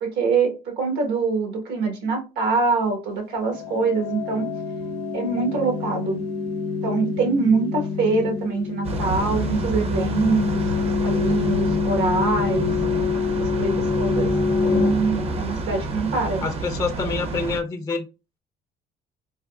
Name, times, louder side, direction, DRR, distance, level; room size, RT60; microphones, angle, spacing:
voice 1, 0.0-4.5 5.1-6.2 6.8-10.6 11.0-12.7 13.6-14.3 14.6-16.4, right 4 dB, 80° right, 1.1 m, -24 dB
sound 1, 3.4-16.1, left 5 dB, 85° left, 0.6 m, -26 dB
sound 2, 8.8-17.6, right 3 dB, 35° right, 0.5 m, -29 dB
voice 2, 16.4-18.1, left 4 dB, 20° left, 0.4 m, -27 dB
3.4 x 2.3 x 2.3 m
cardioid pair, 110°, 17 cm